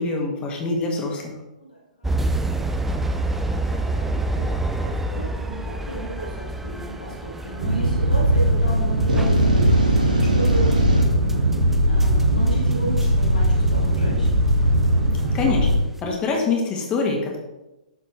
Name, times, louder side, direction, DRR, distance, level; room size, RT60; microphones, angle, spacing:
voice 1, 0.0-1.3 15.3-17.4, left 4 dB, 20° left, 0 dB, 1.8 m, -25 dB
voice 2, 1.6-3.2 3.7-9.8 10.2-10.7 11.9-14.4, right 1 dB, 80° left, -4 dB, 2.3 m, -34 dB
sound 1, 2.0-16.0, right 2 dB, 5° right, 0.4 m, -29 dB
sound 2, 7.6-15.8, equal, 50° right, 2.4 m, -19 dB
sound 3, 9.1-11.0, right 1 dB, 75° right, 1.8 m, -21 dB
12.0 x 4.3 x 3.2 m, 1.0 s
figure-of-eight pair, 115°, 4 cm